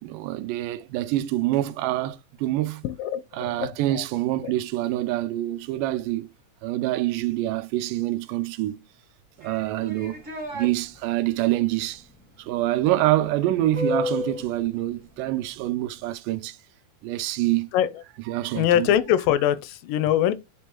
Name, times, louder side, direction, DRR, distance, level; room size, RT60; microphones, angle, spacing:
voice 1, 0.0-2.8 3.3-6.3 6.6-8.8 9.4-10.2 10.5-12.0 12.4-16.6 17.0-17.7 18.3-18.9, right 15 dB, 85° right, 2.2 m, -26 dB
voice 2, 2.8-4.0 17.7-17.9 18.5-20.3, left 11 dB, 90° left, 2.3 m, -23 dB
sound 1, 9.4-10.7 12.9-14.5, left 3 dB, 45° right, 1.0 m, -31 dB
9.9 x 3.5 x 2.9 m
omnidirectional pair, 3.8 m